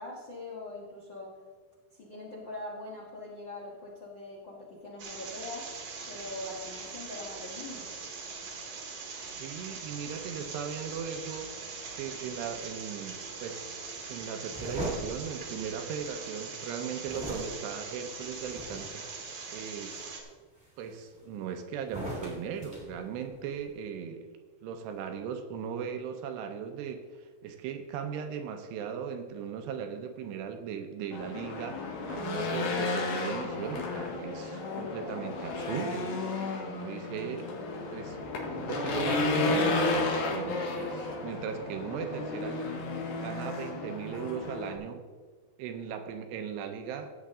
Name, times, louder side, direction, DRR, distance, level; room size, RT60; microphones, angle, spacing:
voice 1, 0.0-1.3 2.0-5.7 6.1-7.9, left 2 dB, 80° left, -4 dB, 1.0 m, -42 dB
sound 1, 5.0-20.2, right 4 dB, 60° right, 2.2 m, -42 dB
voice 2, 9.4-11.5 11.9-13.7 14.1-19.1 19.5-20.0 20.8-24.3 24.6-36.1 36.6-37.5 37.9-38.2 38.5-42.7 43.2-45.0 45.6-47.1, right 7 dB, 80° right, 6 dB, 2.8 m, -38 dB
sound 2, 14.5-16.2 17.0-19.1 19.6-20.0 20.6-21.4 21.8-23.7, equal, ahead, 1.7 m, -40 dB
Race car auto racing / Engine, 31.1-44.8, left 3 dB, 65° left, 2.9 m, -32 dB
16.0 x 8.1 x 3.7 m, 1.5 s
omnidirectional pair, 5.1 m